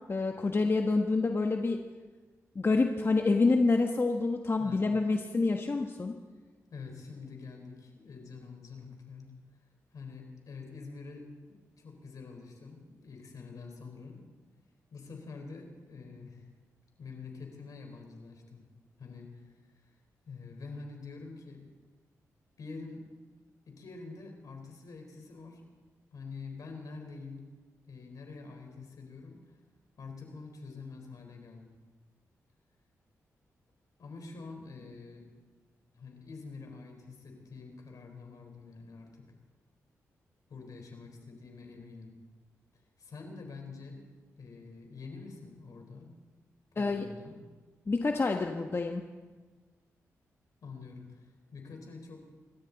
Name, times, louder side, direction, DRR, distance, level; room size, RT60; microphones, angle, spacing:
voice 1, 0.1-1.8 2.5-6.1 46.8-47.1 47.9-49.0, left 3 dB, 40° left, 3 dB, 1.3 m, -27 dB
voice 2, 6.7-9.3 9.9-14.2 14.9-16.4 17.0-18.6 19.0-19.5 19.9-20.0 20.2-21.6 22.6-23.1 23.7-25.6 26.1-27.4 27.8-29.4 30.0-31.8 34.0-35.3 35.9-39.3 40.5-42.1 43.0-44.1 44.4-46.1 46.7-47.4 50.6-52.2, left 4 dB, 70° left, 3 dB, 4.2 m, -46 dB
27.0 x 13.5 x 4.1 m, 1.3 s
supercardioid pair, 45°, 6 cm